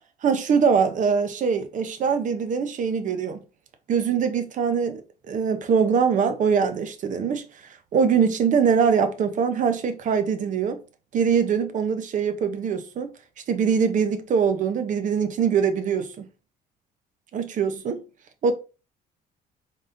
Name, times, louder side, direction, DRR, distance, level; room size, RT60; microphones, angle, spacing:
voice 1, 0.2-3.4 3.9-5.0 5.3-7.4 7.9-10.8 11.1-13.1 13.5-16.3 17.3-18.0 18.4-18.5, right 6 dB, 50° right, 0.7 m, -23 dB
4.0 x 3.6 x 2.6 m
cardioid pair, 110°, 17 cm